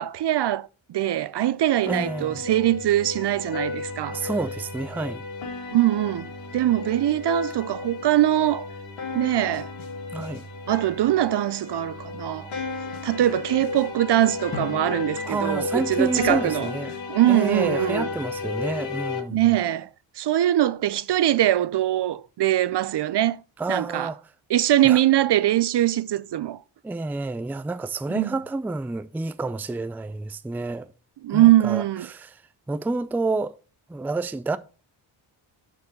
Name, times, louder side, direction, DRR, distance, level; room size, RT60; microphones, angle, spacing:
voice 1, 0.0-4.2 5.7-8.7 9.1-9.7 10.7-12.5 13.0-16.7 17.1-18.1 19.3-19.9 20.2-23.4 23.7-24.1 24.5-26.6 28.1-28.3 31.2-32.1, right 13 dB, 55° right, 0.5 m, -22 dB
voice 2, 1.8-2.4 4.1-5.2 10.1-10.4 15.2-16.9 17.3-19.4 23.6-24.2 24.8-25.0 26.8-30.9 31.3-32.4 32.7-33.5 33.9-34.6, right 3 dB, 5° right, 0.4 m, -29 dB
sound 1, 1.9-19.2, left 4 dB, 70° left, 1.9 m, -33 dB
Drum, 14.5-17.2, left 4 dB, 25° left, 2.4 m, -40 dB
6.8 x 4.6 x 6.4 m
cardioid pair, 85°, 48 cm